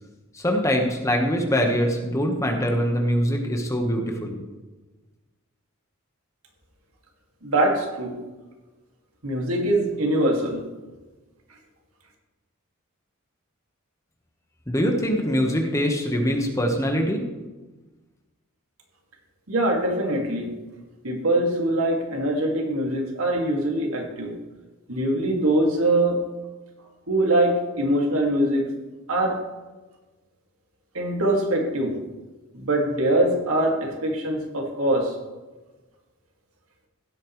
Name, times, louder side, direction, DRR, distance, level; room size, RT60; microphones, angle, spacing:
voice 1, 0.3-4.4 14.7-17.2, equal, 15° left, 2 dB, 1.3 m, -23 dB
voice 2, 7.4-8.2 9.2-10.7 19.5-20.6 21.0-24.4 24.9-26.2 27.1-28.7 29.1-29.4 30.9-32.0 32.5-35.2, right 1 dB, 85° right, 0 dB, 2.2 m, -23 dB
16.0 x 8.5 x 3.2 m, 1.2 s
head